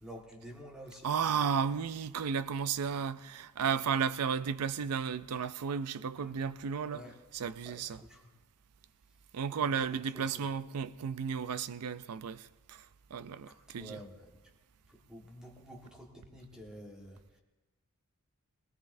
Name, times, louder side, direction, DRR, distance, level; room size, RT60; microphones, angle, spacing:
voice 1, 0.0-1.2 6.1-6.5 6.9-7.2 7.6-8.3 9.7-10.5 13.5-14.4 14.9-17.4, equal, 5° right, 1.4 m, -50 dB
voice 2, 1.0-7.1 7.3-8.0 9.3-12.9 13.1-14.0, right 6 dB, 85° right, 0.5 m, -33 dB
20.5 x 17.5 x 2.6 m
head